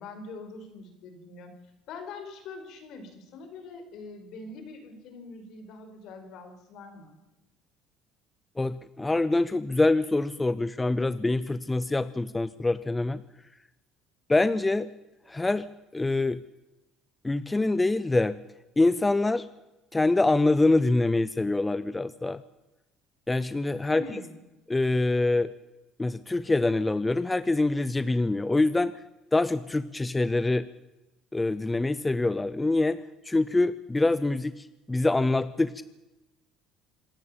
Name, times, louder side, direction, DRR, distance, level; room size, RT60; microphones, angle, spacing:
voice 1, 0.0-1.5 1.9-7.2 23.9-24.4, left 3 dB, 60° left, 7 dB, 5.1 m, -43 dB
voice 2, 8.6-13.2 14.3-14.9 15.3-15.7 15.9-16.4 17.2-18.4 18.8-19.5 19.9-22.4 23.3-24.0 24.7-25.5 26.0-28.9 29.3-30.7 31.3-35.8, left 2 dB, 10° left, 15 dB, 0.6 m, -25 dB
26.0 x 13.5 x 8.8 m, 1.0 s
cardioid pair, 130°, 0 cm